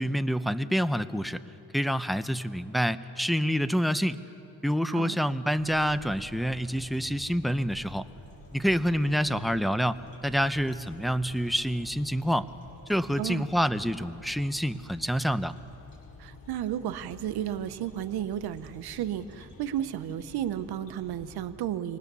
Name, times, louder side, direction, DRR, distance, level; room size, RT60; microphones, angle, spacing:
voice 1, 0.0-1.4 1.7-4.2 4.6-8.1 8.5-12.5 12.9-15.5, equal, ahead, 13 dB, 0.8 m, -27 dB
sound 1, 5.6-21.5, left 2 dB, 65° left, 7.0 m, -50 dB
voice 2, 16.2-22.0, right 11 dB, 85° right, 11 dB, 1.0 m, -33 dB
25.5 x 19.5 x 6.9 m, 2.8 s
cardioid pair, 65°, 37 cm